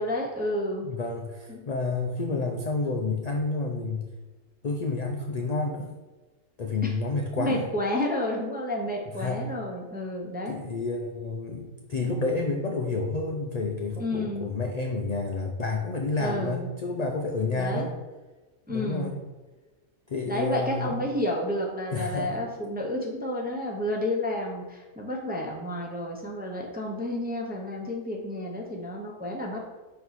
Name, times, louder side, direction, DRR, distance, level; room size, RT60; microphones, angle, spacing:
voice 1, 0.0-1.0 1.5-1.6 6.8-6.9 7.4-10.6 14.0-14.5 16.2-16.7 17.5-17.9 18.7-19.1 20.3-29.6, left 1 dB, 10° right, -1 dB, 0.5 m, -30 dB
voice 2, 0.8-4.0 4.6-5.9 6.6-7.7 9.2-9.4 10.5-17.9 18.7-19.2 20.1-20.9 21.9-22.3, left 3 dB, 60° left, 2 dB, 0.4 m, -29 dB
5.1 x 4.6 x 4.0 m, 1.2 s
omnidirectional pair, 1.4 m